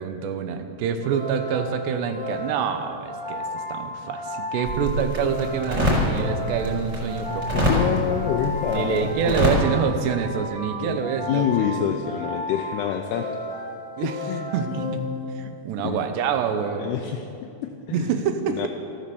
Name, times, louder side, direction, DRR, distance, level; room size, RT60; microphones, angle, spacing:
voice 1, 0.0-7.8 8.7-11.7 14.0-14.2 14.5-15.0 15.4-16.9 17.9-18.7, right 7 dB, 75° right, 8 dB, 2.9 m, -27 dB
sound 1, 1.0-15.6, left 1 dB, 5° left, 0.6 m, -34 dB
sound 2, 4.6-9.6, equal, 25° right, 5.3 m, -25 dB
voice 2, 7.5-9.4 10.8-13.3 14.0-14.5 15.8-16.0 16.8-18.1 18.5-18.7, left 9 dB, 80° left, 4 dB, 2.4 m, -27 dB
15.0 x 12.0 x 7.0 m, 2.6 s
omnidirectional pair, 5.3 m